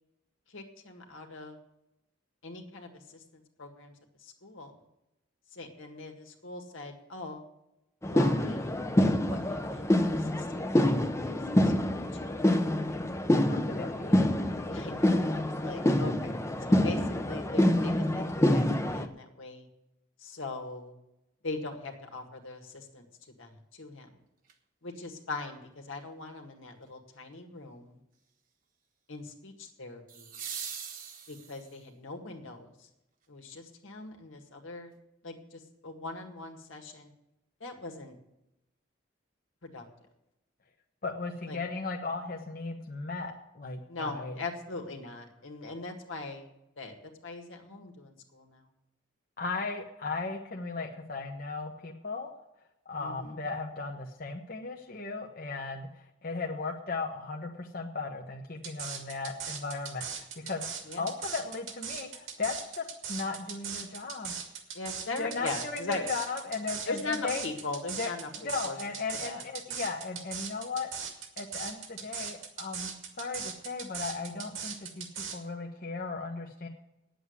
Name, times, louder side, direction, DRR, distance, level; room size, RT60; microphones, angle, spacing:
voice 1, 0.5-1.6 2.4-3.9 4.2-4.7 5.5-7.4 8.1-8.6 9.0-11.4 11.6-11.7 12.2-12.4 14.7-16.4 16.7-17.0 17.2-18.2 18.5-19.7 20.2-20.9 21.4-23.1 23.4-24.1 24.8-28.0 29.1-30.4 31.3-32.7 33.3-34.9 35.2-37.1 37.6-38.2 39.6-39.9 41.5-41.6 43.9-46.5 46.8-46.9 47.2-48.7 53.0-53.4 60.8-61.1 64.7-66.1 66.9-68.8 69.2-69.4, left 3 dB, 80° left, 3 dB, 1.9 m, -41 dB
sound 1, 8.0-19.1, left 1 dB, 15° left, 0.6 m, -26 dB
voice 2, 13.4-14.4 41.0-44.4 49.4-52.3 52.9-55.9 56.2-60.6 61.0-64.3 65.2-67.4 67.9-68.1 68.4-70.9 71.4-75.1 75.3-76.7, left 4 dB, 45° left, 1 dB, 1.0 m, -36 dB
sound 2, 24.4-24.5 30.1-31.9 34.1-34.2, right 7 dB, 40° right, 1.2 m, -41 dB
sound 3, 58.6-75.4, right 7 dB, 80° right, 2.2 m, -39 dB
9.7 x 7.8 x 9.5 m, 0.91 s
head